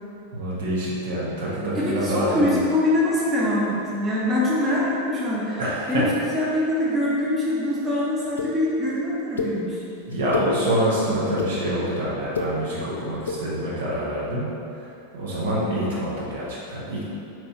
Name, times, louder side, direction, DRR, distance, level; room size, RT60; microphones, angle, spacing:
voice 1, 0.3-2.6 5.6-6.1 10.1-14.5 15.1-17.0, equal, 60° right, -7 dB, 0.9 m, -26 dB
voice 2, 1.7-5.6 5.9-9.8, left 1 dB, 20° right, -7 dB, 0.8 m, -24 dB
sound 1, 8.4-8.5 9.4-9.5 10.1-10.5 11.1-11.5 12.2-12.5 13.2-13.4, left 4 dB, 70° left, 0.4 m, -27 dB
4.5 x 3.0 x 2.9 m, 2.7 s
figure-of-eight pair, 90°, 0 cm